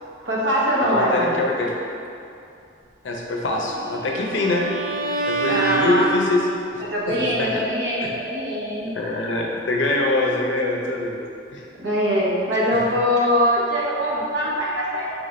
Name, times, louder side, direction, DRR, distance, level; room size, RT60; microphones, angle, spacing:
voice 1, 0.2-1.4 5.5-6.1 6.9-8.9 11.8-15.1, equal, 70° right, -5 dB, 0.9 m, -22 dB
voice 2, 0.8-1.7 3.0-4.6 5.3-6.4 6.7-7.5 8.9-11.2 11.5-11.6 12.7-12.8, left 2 dB, 80° left, -1 dB, 0.6 m, -24 dB
Bowed string instrument, 3.6-6.7, right 3 dB, 45° right, 0.3 m, -27 dB
4.0 x 3.4 x 3.2 m, 2.6 s
head